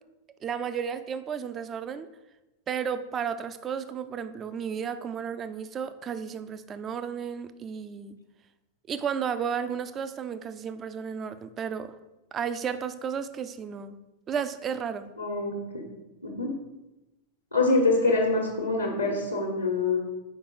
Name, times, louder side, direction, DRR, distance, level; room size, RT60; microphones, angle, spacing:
voice 1, 0.4-2.1 2.7-8.2 8.9-12.0 12.3-14.0 14.3-15.1, right 7 dB, 25° right, 11 dB, 0.5 m, -33 dB
voice 2, 15.2-15.9 16.2-16.5 17.5-20.0, left 3 dB, 85° left, -3 dB, 1.3 m, -25 dB
6.5 x 5.0 x 4.8 m, 1.0 s
figure-of-eight pair, 90°, 0 cm